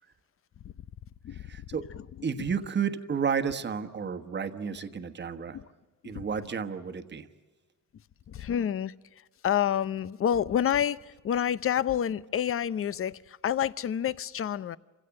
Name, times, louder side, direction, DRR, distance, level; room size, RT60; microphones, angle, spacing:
voice 1, 1.3-1.9 2.2-5.6 6.0-7.3, right 6 dB, 35° right, 1.3 m, -32 dB
voice 2, 8.3-8.9 9.4-14.8, left 9 dB, 45° left, 0.7 m, -28 dB
27.0 x 16.5 x 8.7 m
cardioid pair, 90°, 30 cm